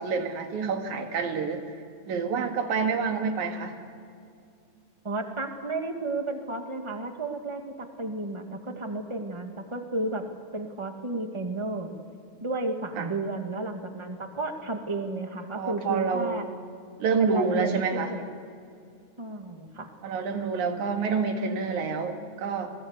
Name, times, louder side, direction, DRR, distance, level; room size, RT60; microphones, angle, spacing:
voice 1, 0.0-1.6 2.0-3.8 13.0-13.1 15.5-16.5 17.0-18.1 20.0-22.7, right 5 dB, 85° right, 5 dB, 3.3 m, -28 dB
voice 2, 5.0-10.2 10.5-11.9 12.4-16.5 17.2-18.2 19.2-19.9, right 2 dB, 15° right, 5 dB, 1.1 m, -32 dB
26.5 x 18.5 x 8.1 m, 2.4 s
omnidirectional pair, 3.3 m